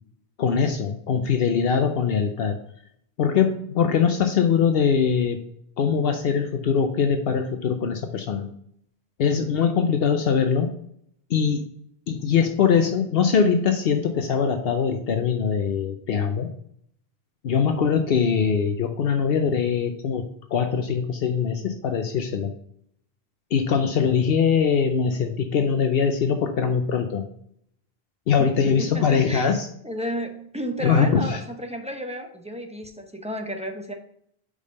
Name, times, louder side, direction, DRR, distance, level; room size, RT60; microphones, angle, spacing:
voice 1, 0.4-2.6 3.2-5.4 5.8-8.5 9.2-10.7 11.3-11.6 12.1-16.5 17.4-20.2 20.5-22.5 23.5-27.2 28.3-29.7 30.8-31.4, left 6 dB, 70° left, 6 dB, 0.9 m, -22 dB
voice 2, 28.4-29.5 29.8-33.9, equal, 5° right, 3 dB, 0.8 m, -32 dB
5.1 x 5.0 x 5.3 m, 0.68 s
omnidirectional pair, 1.1 m